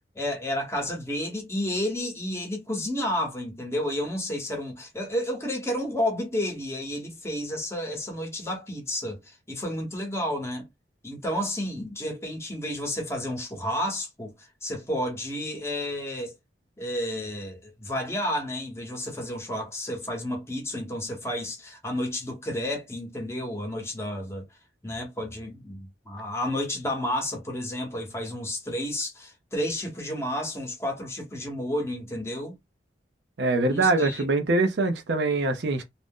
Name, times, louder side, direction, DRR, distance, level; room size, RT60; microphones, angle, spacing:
voice 1, 0.1-10.7 11.0-16.3 16.8-24.4 24.8-32.5 33.7-34.2, left 1 dB, 15° left, 0.9 m, -31 dB
voice 2, 33.4-35.8, right 2 dB, 70° right, 0.5 m, -23 dB
2.5 x 2.0 x 3.5 m
head